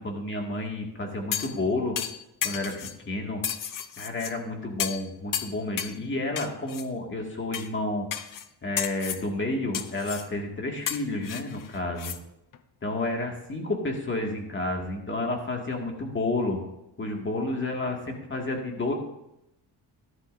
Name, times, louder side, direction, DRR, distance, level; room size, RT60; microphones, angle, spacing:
voice 1, 0.0-2.0 2.4-2.7 3.1-3.4 4.0-8.1 8.6-12.1 12.8-16.6 17.0-18.9, left 2 dB, 25° left, 1 dB, 2.1 m, -30 dB
sound 1, 1.3-1.6 2.0-3.0 3.4-4.3 4.8-5.1 5.3-6.0 6.4-6.8 7.5-7.7 8.1-8.5 8.8-9.2 9.7-10.3 10.9-12.2 12.5-12.6, left 9 dB, 50° left, 0.7 m, -33 dB
14.0 x 12.0 x 2.7 m, 0.85 s
cardioid pair, 115°, 42 cm